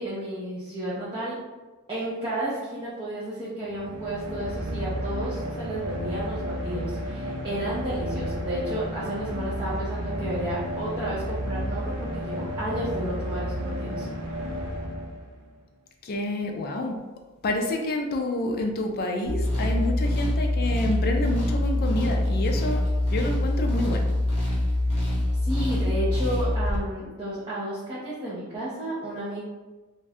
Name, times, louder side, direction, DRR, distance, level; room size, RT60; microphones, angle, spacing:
voice 1, 0.0-1.4 1.9-14.1 25.4-29.4, right 1 dB, 20° right, -10 dB, 0.7 m, -32 dB
sound 1, 3.7-15.6, equal, 80° right, 0.5 m, -32 dB
voice 2, 16.0-17.0 17.4-22.8 23.1-24.2, left 1 dB, 45° left, 3 dB, 0.4 m, -28 dB
sound 2, 19.3-26.8, left 1 dB, 25° left, 0.9 m, -25 dB
2.5 x 2.2 x 3.4 m, 1.2 s
head